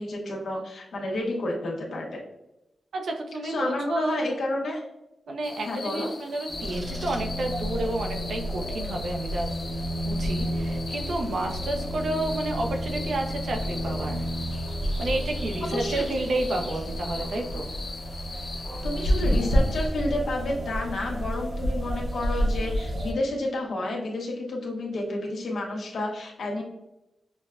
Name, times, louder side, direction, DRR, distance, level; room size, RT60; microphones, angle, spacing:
voice 1, 0.0-2.2 3.4-4.8 5.6-6.1 15.6-16.1 18.8-26.6, left 1 dB, 80° left, -1 dB, 1.1 m, -30 dB
voice 2, 2.9-4.2 5.3-9.5 9.8-14.3 15.0-17.7, right 1 dB, 70° right, 2 dB, 0.7 m, -30 dB
sound 1, 5.4-19.9, left 3 dB, 55° left, 0.8 m, -41 dB
sound 2, 6.5-23.1, equal, 45° right, 0.9 m, -30 dB
6.3 x 2.2 x 2.4 m, 0.90 s
wide cardioid pair, 160°, 0 cm